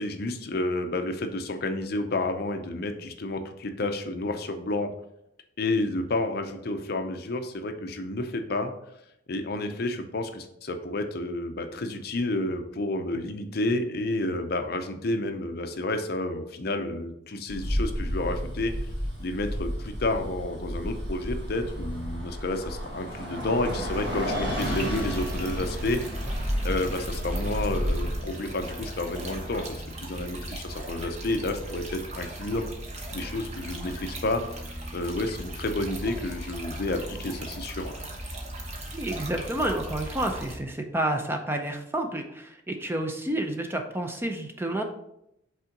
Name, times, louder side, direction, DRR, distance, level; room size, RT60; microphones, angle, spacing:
voice 1, 0.0-4.9 5.6-8.7 9.3-18.7 19.2-26.0 26.6-32.6 33.1-34.4 34.9-38.0, left 2 dB, 50° left, 7 dB, 0.6 m, -30 dB
Bus, 17.5-28.2, equal, 80° right, 2.2 m, -31 dB
sound 1, 24.6-40.6, right 1 dB, 35° right, 1.0 m, -38 dB
voice 2, 38.9-44.8, right 1 dB, 10° right, 4 dB, 0.5 m, -30 dB
5.5 x 3.7 x 5.1 m, 0.80 s
head